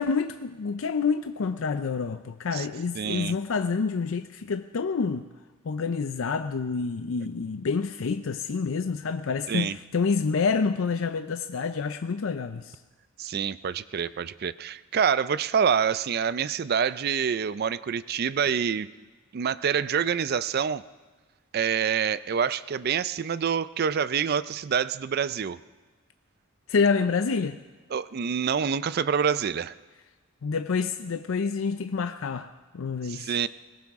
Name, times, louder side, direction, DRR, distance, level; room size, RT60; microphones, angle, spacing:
voice 1, 0.0-5.2 5.6-12.8 26.7-27.6 30.4-33.3, left 5 dB, 75° left, 9 dB, 0.5 m, -28 dB
voice 2, 3.0-3.4 9.5-9.8 13.2-18.9 19.3-20.8 21.5-25.6 27.9-29.7 33.1-33.5, right 7 dB, 50° right, 16 dB, 0.4 m, -26 dB
21.0 x 18.5 x 3.6 m, 1.3 s
head